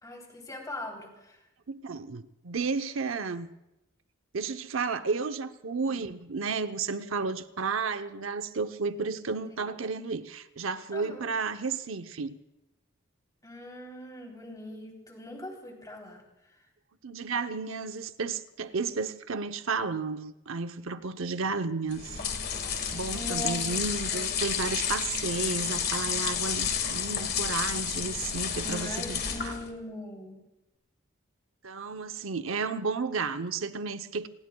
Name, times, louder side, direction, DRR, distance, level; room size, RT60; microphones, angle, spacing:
voice 1, 0.0-1.4 5.9-6.0 9.6-9.7 10.9-11.3 13.4-16.5 23.1-23.6 24.1-24.3 28.6-30.4, left 1 dB, 20° left, 1 dB, 3.2 m, -41 dB
voice 2, 1.7-3.5 4.3-12.3 17.0-22.2 22.9-29.5 31.6-34.3, right 4 dB, 75° right, 9 dB, 0.8 m, -32 dB
sound 1, 21.9-29.7, left 7 dB, 50° left, 1.9 m, -31 dB
28.5 x 20.0 x 2.3 m, 0.93 s
head